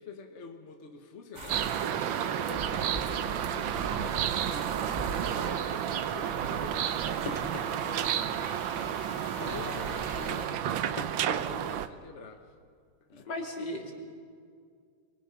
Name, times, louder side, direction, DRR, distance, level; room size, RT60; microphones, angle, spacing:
voice 1, 0.0-8.7 9.4-12.5 13.1-13.3, left 4 dB, 40° left, 4 dB, 1.4 m, -47 dB
sound 1, 1.3-10.5, right 2 dB, 25° right, 1.6 m, -42 dB
sound 2, 1.5-11.9, right 10 dB, 75° right, 1.5 m, -31 dB
sound 3, 7.3-7.8 9.2-9.5 11.0-11.5 11.9-12.0 13.1-13.2, left 7 dB, 90° left, 1.9 m, -42 dB
voice 2, 9.4-10.0 13.2-13.9, left 1 dB, 60° left, 0 dB, 3.6 m, -37 dB
26.0 x 23.0 x 5.7 m, 2.2 s
omnidirectional pair, 2.2 m